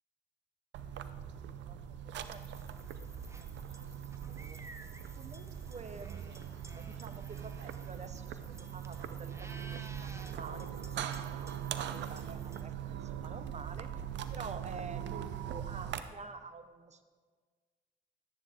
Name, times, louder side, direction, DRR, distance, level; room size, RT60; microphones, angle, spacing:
sound 1, 0.7-16.0, right 9 dB, 75° right, 0.6 m, -41 dB
voice 1, 1.4-3.1 3.4-3.9 4.3-4.6 5.1-10.8 11.4-14.0 14.3-17.1, right 4 dB, 35° right, 10 dB, 0.9 m, -49 dB
sound 2, 2.2-12.6, right 2 dB, 15° right, 1.0 m, -53 dB
11.5 x 10.0 x 3.6 m, 1.5 s
supercardioid pair, 55°, 19 cm